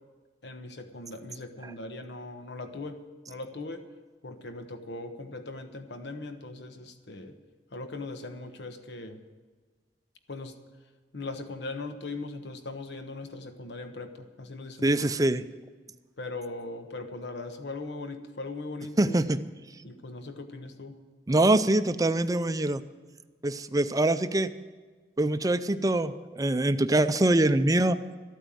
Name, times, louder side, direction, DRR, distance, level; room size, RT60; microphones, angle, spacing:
voice 1, 0.4-3.0 3.3-3.8 4.2-7.3 7.7-9.2 10.3-10.6 11.1-15.1 16.2-19.2 19.8-21.0, left 2 dB, 75° left, 7 dB, 1.2 m, -39 dB
voice 2, 14.8-15.4 19.0-19.4 21.3-22.8 23.4-24.5 25.2-28.0, right 1 dB, 20° right, 12 dB, 0.5 m, -24 dB
13.5 x 9.0 x 7.5 m, 1.4 s
head